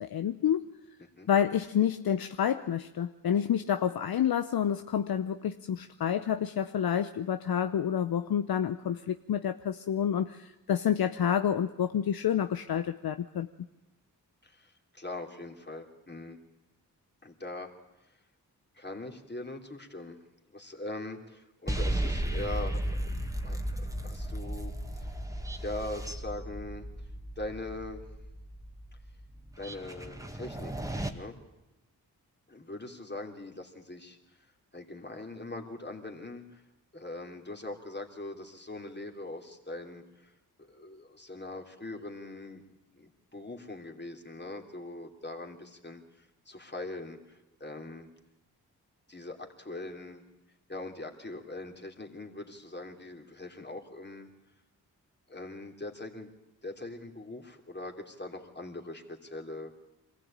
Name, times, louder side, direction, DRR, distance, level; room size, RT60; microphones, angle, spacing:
voice 1, 0.0-0.7 1.3-13.5, left 9 dB, 65° left, 10 dB, 0.7 m, -29 dB
voice 2, 14.4-16.4 17.2-17.7 18.7-20.2 20.5-23.1 23.4-25.1 25.6-26.9 27.4-28.0 29.6-31.4 32.5-34.2 34.7-36.6 36.9-40.3 40.6-42.6 43.0-48.1 49.1-50.2 50.7-54.3 55.3-56.3 56.6-59.8, left 2 dB, 25° left, 3 dB, 3.1 m, -42 dB
sound 1, 21.7-31.1, right 1 dB, 10° right, 2.0 m, -35 dB
23.0 x 15.0 x 8.8 m, 0.98 s
supercardioid pair, 40°, 40 cm